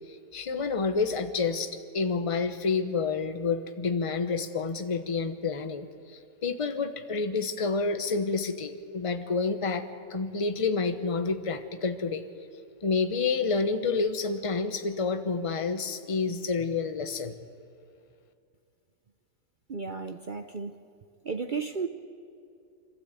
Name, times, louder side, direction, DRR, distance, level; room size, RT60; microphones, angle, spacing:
voice 1, 0.3-9.8 10.1-12.2 12.8-17.3, left 4 dB, 25° left, 8 dB, 0.8 m, -29 dB
voice 2, 19.7-20.8 21.2-21.9, right 5 dB, 55° right, 7 dB, 0.5 m, -33 dB
26.0 x 13.5 x 8.3 m, 2.4 s
omnidirectional pair, 1.8 m